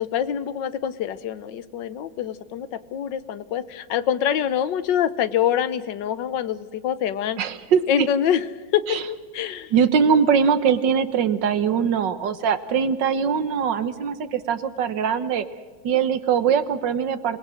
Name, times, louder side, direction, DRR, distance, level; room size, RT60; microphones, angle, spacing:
voice 1, 0.0-7.4 7.9-8.4 8.7-9.7, left 9 dB, 70° left, 14 dB, 1.5 m, -25 dB
voice 2, 7.4-8.1 8.9-9.0 9.7-15.5 15.8-17.4, right 7 dB, 65° right, 12 dB, 1.8 m, -22 dB
27.0 x 19.0 x 6.4 m, 1.5 s
omnidirectional pair, 2.2 m